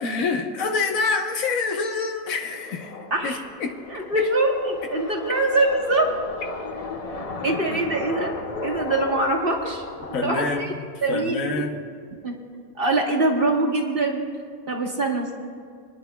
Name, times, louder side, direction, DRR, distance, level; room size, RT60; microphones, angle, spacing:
voice 1, 0.0-2.9 3.2-3.8 4.1-4.3 7.7-7.8 10.1-11.8, left 4 dB, 75° left, 4 dB, 1.3 m, -26 dB
sound 1, 2.4-10.6, left 3 dB, 35° left, 0.6 m, -35 dB
voice 2, 3.1-3.4 3.9-6.1 7.4-8.3 8.6-9.8 10.2-10.7 11.0-11.6 12.2-12.3 12.7-14.2 14.7-15.3, right 2 dB, 40° right, -1 dB, 1.6 m, -23 dB
26.5 x 10.5 x 2.3 m, 2.2 s
omnidirectional pair, 1.4 m